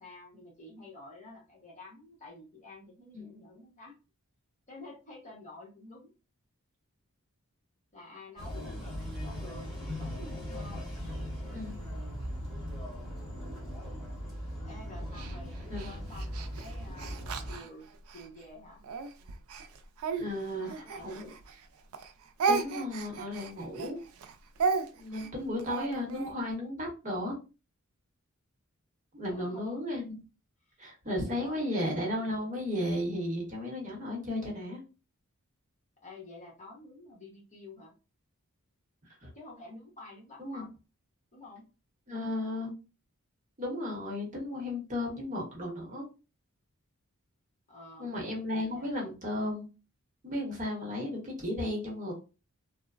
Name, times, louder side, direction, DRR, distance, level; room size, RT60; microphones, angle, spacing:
voice 1, 0.0-4.0 4.7-6.1 7.9-10.9 14.6-17.9 18.1-18.8 20.6-21.3 29.3-29.8 30.6-30.8 31.2-32.0 36.0-37.9 39.3-40.7 41.3-41.6 47.7-48.3 48.6-48.9, left 2 dB, 35° left, -3 dB, 1.0 m, -50 dB
sound 1, 8.4-17.6, equal, ahead, 1.4 m, -39 dB
Speech, 15.1-18.3 18.8-21.7 21.9-26.3, right 5 dB, 70° right, 0.4 m, -34 dB
voice 2, 20.2-20.7 21.0-21.2 22.5-24.0 25.0-27.4 29.1-30.2 30.8-34.8 39.2-39.3 40.4-40.6 42.1-42.7 43.6-46.1 48.0-49.7 50.2-52.1, left 1 dB, 35° right, -2 dB, 0.9 m, -34 dB
3.0 x 2.0 x 2.4 m, 0.32 s
head